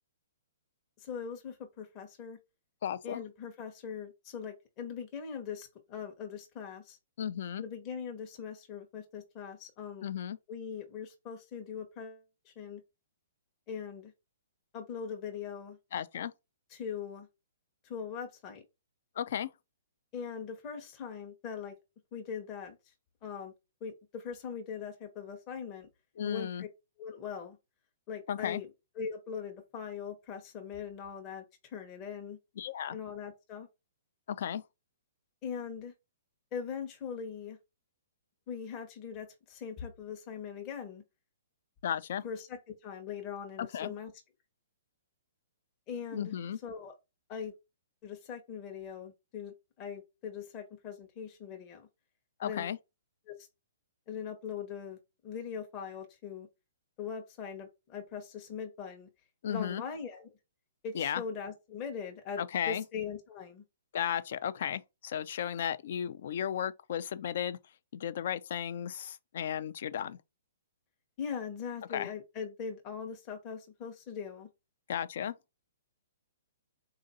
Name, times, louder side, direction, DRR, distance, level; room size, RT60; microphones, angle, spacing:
voice 1, 1.0-2.4 3.0-7.0 7.6-10.1 10.5-12.8 13.7-14.1 14.7-15.8 16.7-17.3 17.8-18.6 20.1-21.7 22.1-22.8 23.2-23.5 23.8-25.9 26.2-26.7 27.0-27.6 28.1-28.7 29.0-32.4 32.9-33.7 35.4-35.9 36.5-37.6 38.5-41.0 42.2-44.1 45.9-46.3 46.6-46.9 47.3-47.5 48.0-51.9 52.4-52.7 53.3-53.4 54.1-55.0 55.2-56.5 57.0-59.1 59.5-60.3 60.8-63.6 71.2-74.5, left 7 dB, 30° left, 0.8 m, -41 dB
voice 2, 2.8-3.2 7.2-7.6 10.0-10.4 15.9-16.3 19.2-19.5 26.2-26.6 28.3-28.6 32.6-33.0 34.3-34.6 41.8-42.2 43.6-43.9 46.1-46.6 52.4-52.8 59.4-59.8 60.9-61.2 62.4-62.8 63.9-67.6 67.9-70.2 71.9-72.1 74.9-75.3, left 9 dB, 60° left, 0.4 m, -34 dB
3.9 x 2.5 x 4.0 m
hypercardioid pair, 125°, 0 cm